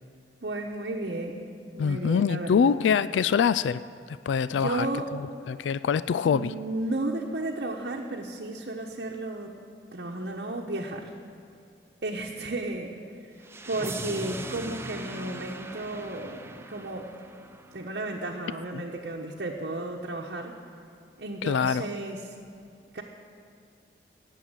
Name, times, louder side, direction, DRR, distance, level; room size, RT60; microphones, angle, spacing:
voice 1, 0.4-1.5 1.7-2.7 4.6-5.1 6.2-9.5 9.9-11.1 12.0-13.3 13.7-17.1 17.7-20.6 21.2-22.4 22.9-23.0, right 2 dB, 65° right, -1 dB, 1.0 m, -33 dB
voice 2, 1.8-3.8 4.1-4.9 5.5-6.5 18.7-18.8 21.4-21.9, left 6 dB, 85° left, 16 dB, 0.3 m, -24 dB
sound 1, 13.4-18.4, right 2 dB, 15° right, 0.6 m, -40 dB
17.5 x 7.1 x 8.9 m, 2.4 s
head